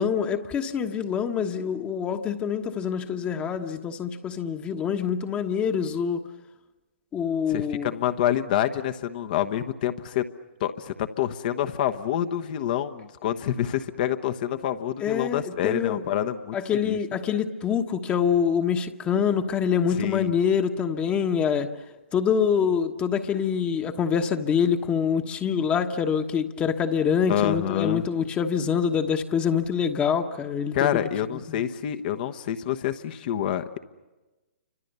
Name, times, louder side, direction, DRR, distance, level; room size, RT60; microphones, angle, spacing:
voice 1, 0.0-6.2 7.1-7.9 15.0-16.0 16.5-21.7 22.1-31.0 31.5-31.6, left 7 dB, 20° left, 5 dB, 1.3 m, -25 dB
voice 2, 7.5-10.2 10.6-16.6 16.8-17.0 19.9-20.3 27.3-28.0 30.7-33.8, left 11 dB, 45° left, 9 dB, 1.2 m, -27 dB
30.0 x 25.5 x 6.9 m, 1.2 s
figure-of-eight pair, 125°, 6 cm